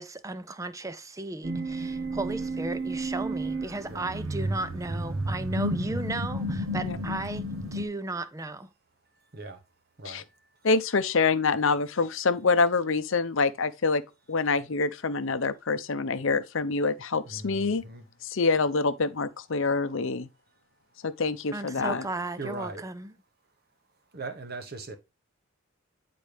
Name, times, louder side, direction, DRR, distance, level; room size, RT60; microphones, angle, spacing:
voice 1, 0.0-8.7 21.5-23.1, right 2 dB, 15° right, 0.4 m, -35 dB
sound 1, 1.4-7.9, right 1 dB, 65° right, 0.9 m, -32 dB
voice 2, 10.6-14.0 14.3-17.8 18.2-20.3 21.0-22.1, left 4 dB, 60° left, 0.6 m, -26 dB
voice 3, 17.3-18.1 21.8-22.0 22.4-22.8 24.1-25.0, right 3 dB, 45° right, 1.1 m, -39 dB
9.7 x 4.2 x 3.4 m
head